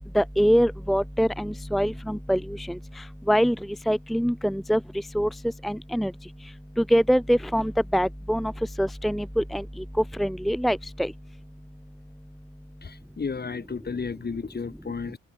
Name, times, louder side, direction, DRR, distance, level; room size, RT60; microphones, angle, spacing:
voice 1, 0.1-2.4 3.3-3.5 3.9-4.8 5.1-5.3 5.6-6.1 6.9-8.5 8.8-9.6 10.2-11.1, equal, ahead, 1.0 m, -23 dB
voice 2, 12.8-15.2, left 5 dB, 25° left, 1.6 m, -33 dB
hypercardioid pair, 50°, 38 cm